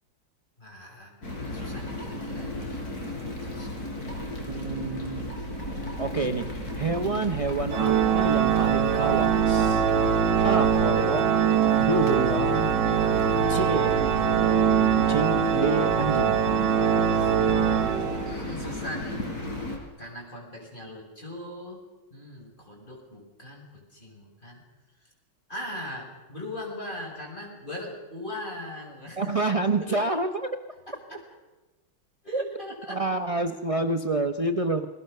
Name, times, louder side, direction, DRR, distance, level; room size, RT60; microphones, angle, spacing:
voice 1, 0.6-3.0 3.2-3.8 10.1-11.0 12.9-13.4 17.1-17.3 18.3-19.3 20.0-21.8 22.1-23.7 23.9-24.6 25.5-29.4 29.6-30.1 30.9-31.2 32.2-33.0, left 1 dB, 20° left, 0 dB, 7.3 m, -40 dB
sound 1, 1.2-19.8, left 1 dB, 45° left, 5.4 m, -34 dB
voice 2, 4.5-5.3 6.0-9.9 10.4-11.3 11.8-12.7 13.5-14.0 14.9-16.8 29.2-30.5 32.3-32.4 32.9-34.9, right 3 dB, 35° right, 7 dB, 0.5 m, -28 dB
Organ, 7.7-18.6, right 8 dB, 60° right, 1.6 m, -23 dB
29.5 x 22.5 x 6.8 m, 1.1 s
omnidirectional pair, 2.3 m